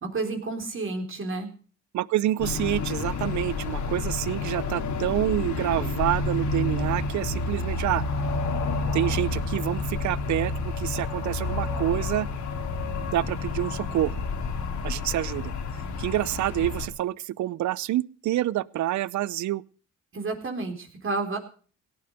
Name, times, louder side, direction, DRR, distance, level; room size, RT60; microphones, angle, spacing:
voice 1, 0.0-1.5 20.1-21.4, right 3 dB, 45° right, 3 dB, 3.7 m, -30 dB
voice 2, 1.9-8.0 8.9-12.3 13.0-14.1 14.8-15.5 16.0-19.6, right 13 dB, 70° right, 21 dB, 0.7 m, -27 dB
sound 1, 2.4-16.9, left 3 dB, 70° left, 2.9 m, -29 dB
17.5 x 9.7 x 5.1 m, 0.41 s
cardioid pair, 90°, 30 cm